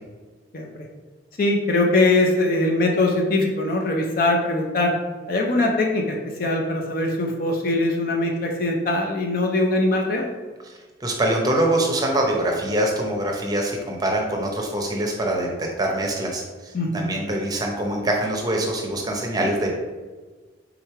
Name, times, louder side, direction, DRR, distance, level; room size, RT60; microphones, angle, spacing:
voice 1, 0.5-0.9 1.4-4.9 5.3-10.3 16.7-17.1, left 2 dB, 50° left, 1 dB, 0.5 m, -22 dB
voice 2, 11.0-19.7, right 1 dB, 20° right, 0 dB, 0.7 m, -24 dB
3.6 x 3.2 x 4.4 m, 1.3 s
head